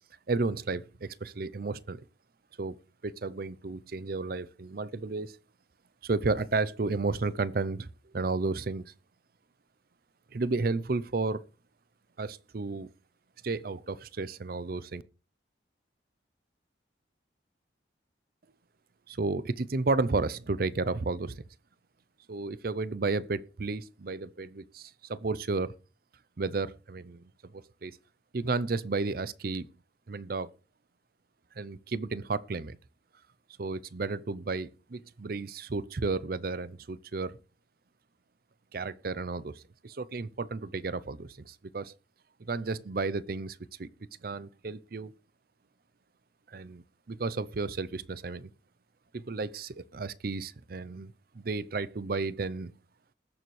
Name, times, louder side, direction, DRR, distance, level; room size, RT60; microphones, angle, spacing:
voice 1, 0.3-2.0 2.6-2.8 3.0-5.4 6.0-8.8 10.3-11.4 12.2-12.9 13.4-15.0 19.1-21.4 22.3-25.7 26.4-28.0 28.3-29.7 30.1-30.5 31.6-32.8 33.6-37.4 38.7-41.9 42.4-43.9 44.2-45.1 46.5-48.5 49.1-52.7, right 3 dB, 50° right, 0.6 m, -32 dB
20.0 x 6.9 x 3.2 m
head